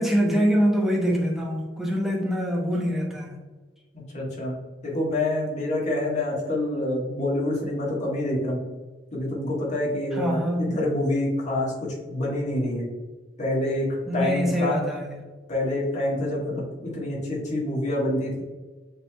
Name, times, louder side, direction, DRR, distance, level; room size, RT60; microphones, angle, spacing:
voice 1, 0.0-3.4 10.1-10.8 14.1-15.2, equal, ahead, -2 dB, 0.9 m, -24 dB
voice 2, 3.9-4.6 4.8-8.6 9.1-12.8 13.4-14.9 15.5-18.4, left 1 dB, 40° left, -4 dB, 1.5 m, -27 dB
6.5 x 3.3 x 2.3 m, 1.3 s
head